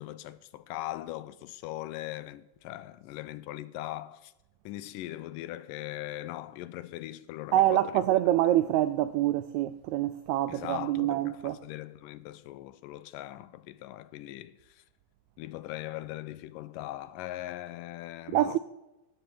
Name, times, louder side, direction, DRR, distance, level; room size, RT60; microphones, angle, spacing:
voice 1, 0.0-4.3 4.7-8.0 10.5-14.8 15.4-18.6, left 15 dB, 85° left, 2.3 m, -40 dB
voice 2, 7.5-11.6 18.3-18.6, right 13 dB, 85° right, 1.6 m, -26 dB
17.0 x 7.7 x 7.0 m
omnidirectional pair, 3.8 m